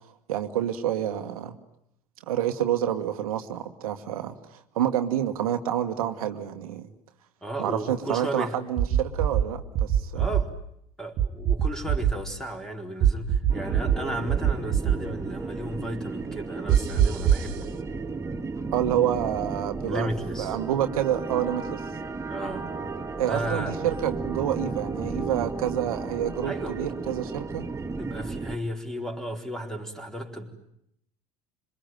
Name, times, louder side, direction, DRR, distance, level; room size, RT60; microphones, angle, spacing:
voice 1, 0.3-1.6 2.3-6.9 7.6-10.3 18.7-20.1 20.4-21.8 23.2-27.6, right 11 dB, 75° right, 7 dB, 1.6 m, -28 dB
voice 2, 7.4-8.6 10.1-10.5 11.0-17.7 19.8-20.6 22.3-22.9 23.2-23.8 26.4-26.9 28.0-30.5, right 1 dB, 5° left, 3 dB, 4.4 m, -34 dB
sound 1, 8.8-9.4 9.8-10.4 11.2-12.1 13.0-14.0 14.3-14.9 16.7-17.5, right 9 dB, 50° right, 2.0 m, -21 dB
sound 2, 13.5-28.6, right 3 dB, 15° right, 1.8 m, -34 dB
26.5 x 23.5 x 9.1 m, 0.76 s
figure-of-eight pair, 70°, 19 cm